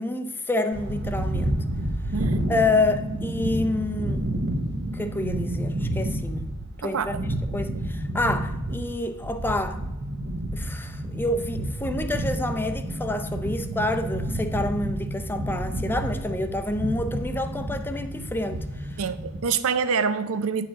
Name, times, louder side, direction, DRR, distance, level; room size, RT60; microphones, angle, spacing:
voice 1, 0.0-1.6 2.5-4.2 4.9-6.5 6.8-9.8 10.5-19.0, left 2 dB, 10° left, 8 dB, 0.5 m, -28 dB
sound 1, 0.7-19.4, right 1 dB, 55° right, 0.8 m, -30 dB
voice 2, 6.8-7.2 19.0-20.7, right 5 dB, 75° right, 13 dB, 0.5 m, -26 dB
8.7 x 4.7 x 5.0 m, 1.0 s
head